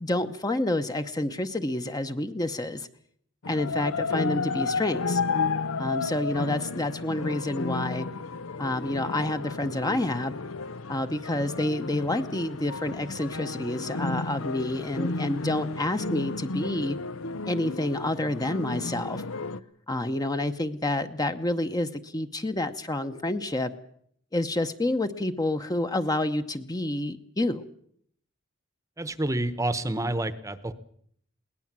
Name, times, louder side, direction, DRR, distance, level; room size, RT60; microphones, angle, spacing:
voice 1, 0.0-2.9 3.5-5.2 5.8-8.1 8.6-10.3 10.9-17.0 17.5-19.2 19.9-23.7 24.3-27.7, left 1 dB, 20° left, 8 dB, 0.9 m, -28 dB
sound 1, 3.4-19.6, left 4 dB, 85° left, 0.8 m, -32 dB
voice 2, 29.0-30.7, right 1 dB, 15° right, 13 dB, 1.0 m, -28 dB
21.5 x 18.5 x 7.5 m, 0.66 s
head